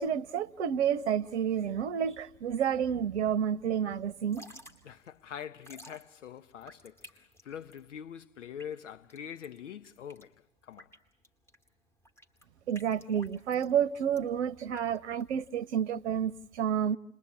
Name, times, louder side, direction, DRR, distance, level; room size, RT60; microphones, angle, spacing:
voice 1, 0.0-4.5 12.7-17.0, right 8 dB, 50° right, 1.0 m, -30 dB
Drip / Trickle dribble, 4.2-15.8, equal, 5° left, 2.1 m, -55 dB
voice 2, 4.8-10.3 10.6-10.9, left 8 dB, 55° left, 1.2 m, -44 dB
30.0 x 21.0 x 8.6 m
figure-of-eight pair, 110°, 43 cm